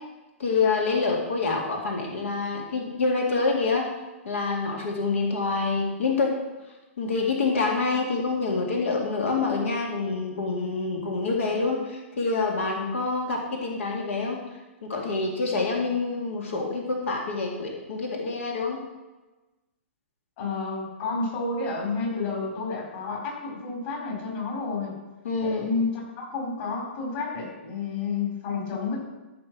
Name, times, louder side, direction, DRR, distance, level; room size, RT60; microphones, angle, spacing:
voice 1, 0.4-3.9 4.2-6.3 7.0-14.4 14.8-18.8 25.2-25.7, left 3 dB, 85° left, 0 dB, 2.3 m, -26 dB
voice 2, 20.4-24.9 25.4-29.0, left 4 dB, 45° left, -1 dB, 4.5 m, -30 dB
13.5 x 5.4 x 6.2 m, 1.1 s
hypercardioid pair, 150°, 7 cm